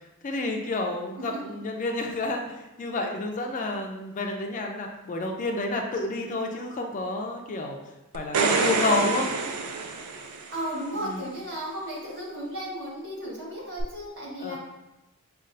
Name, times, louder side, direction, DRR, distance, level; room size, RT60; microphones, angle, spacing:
voice 1, 0.2-7.8 8.1-9.3 11.0-11.2 14.4-14.6, left 2 dB, 35° left, 2 dB, 0.4 m, -30 dB
sound 1, 8.1-10.7 13.8-13.9, right 4 dB, 85° right, 0.4 m, -27 dB
voice 2, 10.5-14.6, right 1 dB, 55° right, -5 dB, 1.3 m, -34 dB
5.2 x 2.3 x 2.5 m, 1.0 s
head